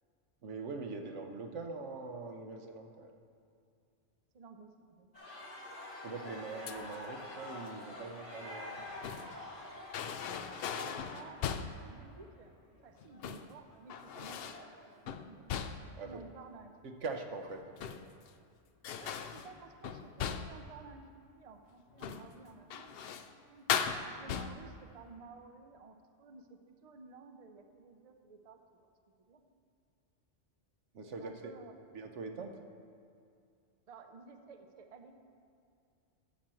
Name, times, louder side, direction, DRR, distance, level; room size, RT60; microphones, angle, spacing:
voice 1, 0.4-3.1 6.0-8.8 16.0-16.2 17.0-17.7 30.9-31.5 31.9-32.6, right 4 dB, 75° right, 5 dB, 1.2 m, -42 dB
voice 2, 4.3-5.1 5.6-5.7 10.7-11.4 11.8-12.6 12.8-15.5 16.0-16.7 17.6-17.7 19.0-23.2 23.5-23.7 24.1-28.9 29.2-29.4 31.2-31.8 33.9-35.1, right 4 dB, 40° right, 6 dB, 0.6 m, -54 dB
sound 1, 5.1-15.1, left 1 dB, 80° left, 3.5 m, -48 dB
sound 2, 6.7-7.1 8.6-9.4 9.9-11.9 13.0-13.5 13.9-14.7 15.1-16.0 17.6-18.3 18.8-20.7 21.9-22.3 22.7-23.3 23.7-24.8, left 7 dB, 65° left, 0.7 m, -38 dB
12.5 x 4.3 x 7.6 m, 2.4 s
omnidirectional pair, 1.2 m